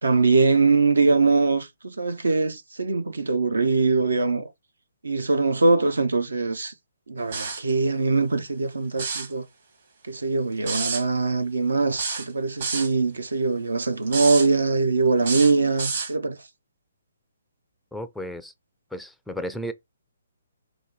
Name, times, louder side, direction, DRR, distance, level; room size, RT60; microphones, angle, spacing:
voice 1, 0.0-4.5 5.0-6.7 7.1-9.4 10.1-16.4, right 3 dB, 65° right, 0.6 m, -22 dB
sound 1, 7.3-7.7 8.9-9.3 10.7-11.0 12.0-12.9 14.1-14.5 15.2-16.1, right 4 dB, 50° right, 1.9 m, -29 dB
voice 2, 17.9-18.5 18.9-19.7, equal, ahead, 0.4 m, -33 dB
3.9 x 2.2 x 4.6 m
figure-of-eight pair, 130°, 0 cm